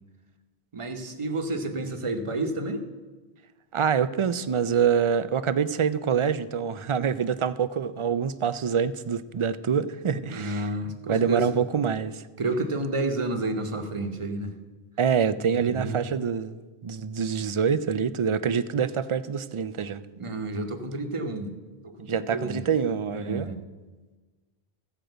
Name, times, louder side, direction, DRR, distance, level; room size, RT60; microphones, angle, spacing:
voice 1, 0.7-2.9 10.3-11.6 12.4-14.6 15.5-16.1 20.2-21.5 21.8-22.7 23.1-23.6, right 2 dB, 30° right, 6 dB, 1.0 m, -30 dB
voice 2, 3.7-10.6 11.1-12.2 15.0-20.0 22.1-23.5, right 7 dB, 50° right, 14 dB, 0.4 m, -26 dB
15.0 x 5.0 x 7.9 m, 1.3 s
omnidirectional pair, 1.0 m